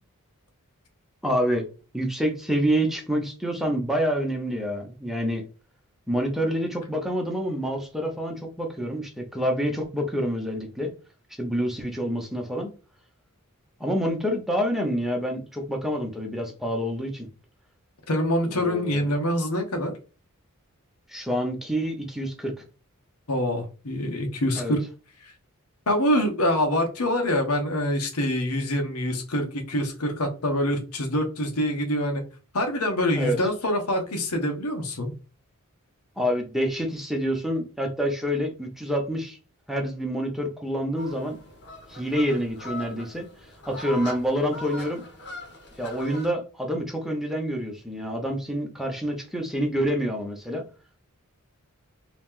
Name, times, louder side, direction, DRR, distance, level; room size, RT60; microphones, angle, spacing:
voice 1, 1.2-1.6 1.9-5.5 6.1-10.9 11.4-12.7 13.8-17.3 18.5-19.0 21.1-22.5 24.5-24.8 33.2-33.4 36.2-39.4 39.7-41.4 41.9-43.3 43.7-45.0 45.8-50.6, equal, ahead, 2 dB, 0.7 m, -27 dB
voice 2, 18.1-19.9 23.3-24.8 25.2-25.3 25.9-32.2 32.5-35.1, left 1 dB, 90° left, 4 dB, 1.0 m, -25 dB
sound 1, 41.0-46.3, left 1 dB, 50° left, 1.1 m, -40 dB
3.0 x 2.9 x 3.6 m, 0.33 s
head